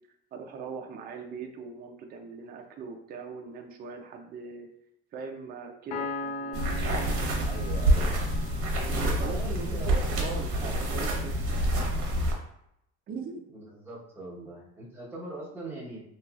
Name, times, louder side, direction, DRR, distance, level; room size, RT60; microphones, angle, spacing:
voice 1, 0.3-4.7 5.1-6.8 8.7-11.7 12.3-12.4 13.1-13.4 14.4-14.5, right 5 dB, 35° right, 3 dB, 0.4 m, -41 dB
Piano, 5.9-9.5, left 2 dB, 75° left, 0.7 m, -39 dB
sound 1, 6.5-12.3, right 1 dB, 50° right, 0.9 m, -27 dB
voice 2, 7.4-8.2 9.1-10.1 10.4-10.7 13.5-16.0, right 2 dB, 10° right, -7 dB, 1.1 m, -42 dB
3.0 x 2.9 x 2.4 m, 0.76 s
cardioid pair, 125°, 29 cm